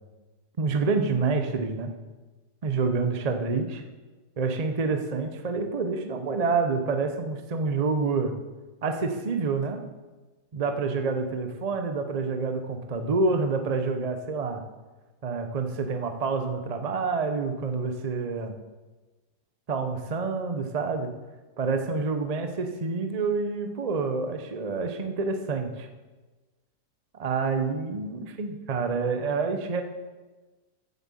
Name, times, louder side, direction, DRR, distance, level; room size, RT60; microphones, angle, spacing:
voice 1, 0.6-1.9 2.6-3.8 4.4-8.3 8.8-9.8 10.5-14.6 15.2-18.6 19.7-21.1 21.6-25.9 27.1-29.8, right 4 dB, 45° right, 6 dB, 0.5 m, -28 dB
7.9 x 7.4 x 7.4 m, 1.2 s
omnidirectional pair, 1.9 m